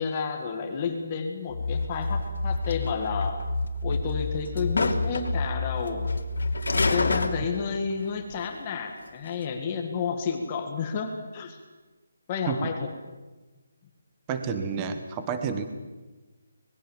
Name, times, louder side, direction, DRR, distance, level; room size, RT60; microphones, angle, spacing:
voice 1, 0.0-3.4 3.8-6.1 6.7-11.6 12.3-12.9, left 5 dB, 15° left, 4 dB, 1.8 m, -31 dB
sound 1, 1.5-7.3, left 3 dB, 40° left, 2.0 m, -30 dB
sound 2, 1.7-3.5 3.9-5.5 5.8-7.9 8.3-8.4 8.9-9.4, left 3 dB, 85° left, 2.8 m, -29 dB
voice 2, 14.3-15.7, right 6 dB, 10° right, 8 dB, 1.1 m, -30 dB
25.5 x 20.5 x 7.4 m, 1.2 s
hypercardioid pair, 180°, 0 cm